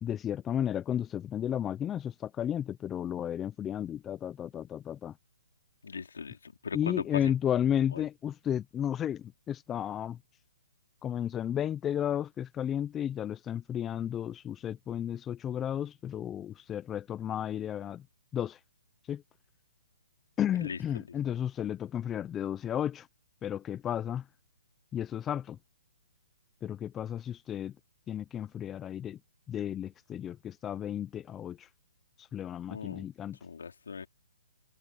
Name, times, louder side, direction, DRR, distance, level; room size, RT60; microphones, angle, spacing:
voice 1, 0.0-5.1 6.7-10.2 11.0-18.1 18.3-18.6 19.1-19.2 20.4-23.1 23.4-24.3 24.9-25.6 26.6-27.7 28.1-29.2 29.5-31.7 32.2-33.4, left 10 dB, 10° left, 0.3 m, -33 dB
voice 2, 5.8-7.3 7.9-8.0 20.6-21.0 32.7-33.1 33.4-34.1, left 5 dB, 85° left, 3.4 m, -39 dB
open air
hypercardioid pair, 170°, 0 cm